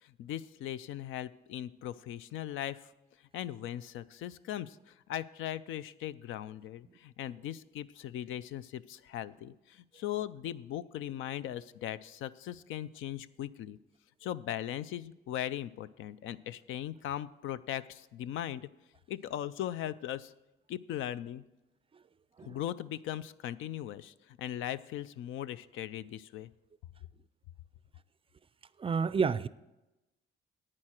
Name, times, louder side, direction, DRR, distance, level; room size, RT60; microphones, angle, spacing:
voice 1, 0.0-2.9 3.3-13.8 14.2-18.7 19.1-20.3 20.7-21.4 22.4-26.5, left 11 dB, 85° left, 16 dB, 0.5 m, -39 dB
voice 2, 28.8-29.5, right 5 dB, 30° right, 17 dB, 0.4 m, -29 dB
11.0 x 8.8 x 4.4 m, 0.99 s
cardioid pair, 90°, 20 cm